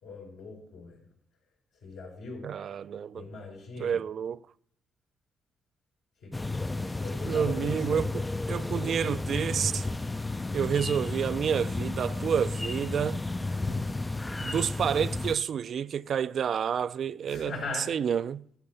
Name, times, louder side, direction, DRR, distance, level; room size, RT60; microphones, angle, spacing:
voice 1, 0.0-1.0 1.8-2.5 3.1-4.0 6.2-8.0 13.5-13.9 17.3-17.9, left 3 dB, 85° left, 5.3 m, -41 dB
voice 2, 2.4-3.3 3.8-4.4 7.2-9.9 10.5-13.2 14.4-18.5, right 8 dB, 60° right, 0.4 m, -29 dB
sound 1, 6.3-15.4, left 2 dB, 15° left, 0.4 m, -32 dB
12.5 x 6.6 x 6.4 m
cardioid pair, 100°, 0 cm